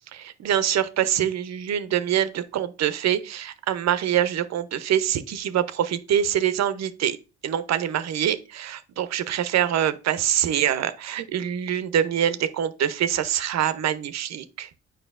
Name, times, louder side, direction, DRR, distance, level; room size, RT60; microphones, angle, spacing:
voice 1, 0.1-7.2 7.4-14.7, right 10 dB, 55° right, 0.6 m, -25 dB
7.9 x 4.9 x 2.4 m
supercardioid pair, 60°, 31 cm